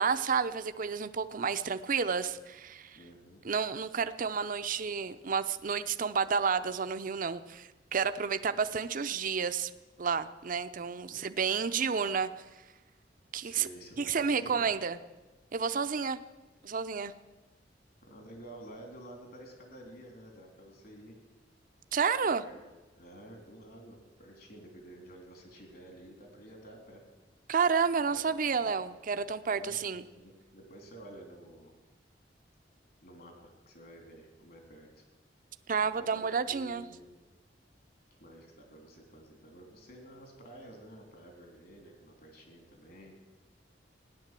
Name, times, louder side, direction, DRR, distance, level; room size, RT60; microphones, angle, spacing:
voice 1, 0.0-3.0 3.4-9.7 10.0-12.3 13.3-13.7 14.0-15.0 15.5-16.2 16.6-17.1 21.9-22.4 27.5-30.0 35.7-36.8, right 6 dB, 50° right, 11 dB, 0.6 m, -30 dB
voice 2, 2.9-3.4 11.1-11.2 13.4-14.6 18.0-21.2 22.2-22.6 23.0-27.0 28.0-28.6 29.5-31.8 33.0-35.0 35.8-37.1 38.2-43.1, right 1 dB, 55° left, 2 dB, 3.4 m, -51 dB
15.5 x 10.5 x 7.5 m, 1.2 s
head